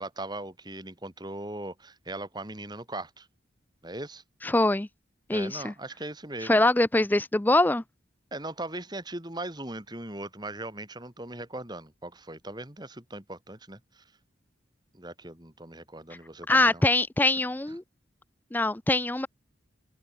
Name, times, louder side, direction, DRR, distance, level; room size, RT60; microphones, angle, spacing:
voice 1, 0.0-3.3 3.8-4.2 5.3-6.6 8.3-14.0 14.9-16.9, right 2 dB, 20° right, 3.3 m, -39 dB
voice 2, 4.4-4.9 5.3-5.7 6.4-7.8 16.5-17.8 18.5-19.3, left 2 dB, 10° left, 0.4 m, -23 dB
head